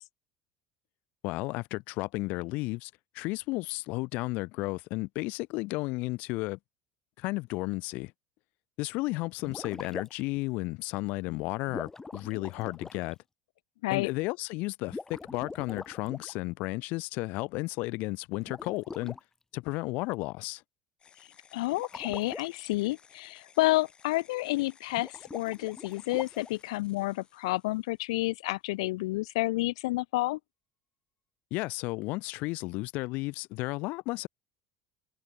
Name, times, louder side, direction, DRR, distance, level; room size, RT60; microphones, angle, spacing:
voice 1, 1.2-6.6 7.2-8.1 8.8-13.2 13.9-19.2 19.5-20.6 31.5-34.3, left 23 dB, 65° left, 1.0 m, -33 dB
sound 1, 9.4-10.4 11.7-13.1 14.8-16.4 18.4-19.2 21.7-22.5 24.9-26.6, left 3 dB, 15° left, 1.9 m, -43 dB
sound 2, 21.0-28.5, left 7 dB, 35° left, 2.8 m, -59 dB
voice 2, 21.5-30.4, left 20 dB, 85° left, 0.6 m, -30 dB
supercardioid pair, 105°, 3 cm